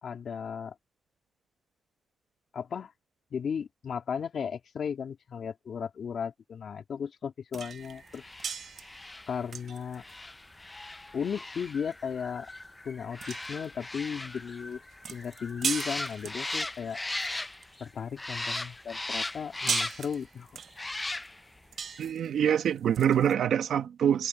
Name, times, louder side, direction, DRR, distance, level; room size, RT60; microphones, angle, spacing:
voice 1, 0.0-0.7 2.5-2.9 3.3-8.2 9.3-10.0 11.1-12.5 12.8-14.8 15.1-17.0 17.8-20.5, left 7 dB, 60° left, 3.0 m, -35 dB
sound 1, 7.5-18.1 18.6-23.3, right 7 dB, 55° right, 0.5 m, -40 dB
sound 2, 8.1-17.9 18.2-20.2 20.7-21.6 21.9-22.0, left 2 dB, 15° left, 0.5 m, -38 dB
voice 2, 22.0-24.3, right 9 dB, 75° right, 1.2 m, -25 dB
cardioid pair, 115°, 0 cm